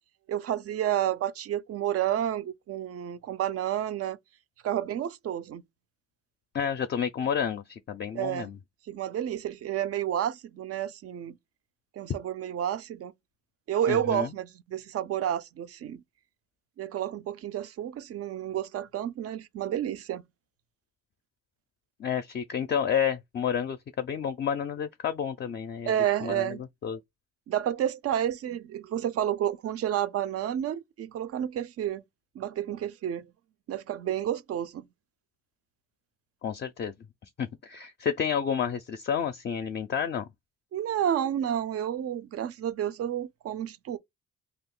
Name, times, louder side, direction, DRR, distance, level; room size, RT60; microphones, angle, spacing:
voice 1, 0.3-4.2 4.6-5.6 8.1-8.5 8.9-11.4 12.0-13.1 13.7-16.0 16.8-20.2 25.8-26.6 27.5-32.0 32.4-33.3 33.7-34.8 40.7-44.0, right 10 dB, 55° right, 0.4 m, -30 dB
voice 2, 6.5-8.6 13.9-14.3 22.0-25.9 26.2-26.5 26.8-27.0 36.4-36.9 37.4-40.3, left 8 dB, 35° left, 0.4 m, -30 dB
2.6 x 2.4 x 3.6 m
cardioid pair, 90°, 30 cm